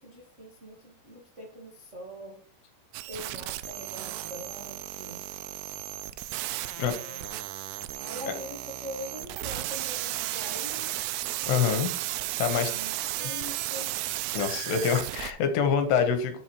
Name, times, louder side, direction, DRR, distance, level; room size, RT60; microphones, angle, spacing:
voice 1, 0.0-2.4 3.1-5.2 6.5-7.3 8.0-10.9 12.5-13.9, equal, 55° right, -4 dB, 0.7 m, -43 dB
sound 1, 2.9-15.3, right 15 dB, 85° right, 2.7 m, -34 dB
voice 2, 11.5-11.9 12.4-12.7 14.3-16.4, left 7 dB, 80° left, 7 dB, 3.2 m, -25 dB
12.0 x 6.7 x 3.1 m, 0.42 s
omnidirectional pair, 5.0 m